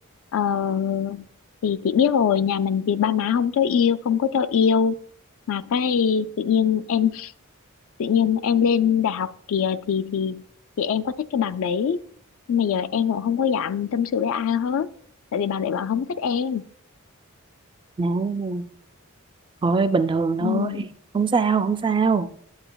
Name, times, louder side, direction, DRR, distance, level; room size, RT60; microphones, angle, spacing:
voice 1, 0.3-1.3 1.6-5.0 5.5-7.3 8.0-10.4 10.8-12.0 12.5-14.9 15.3-16.6 20.4-20.9, left 7 dB, 65° left, 0.3 m, -23 dB
voice 2, 18.0-18.7 19.6-20.7 21.1-22.3, right 4 dB, 20° right, 0.3 m, -22 dB
8.8 x 7.9 x 2.3 m
head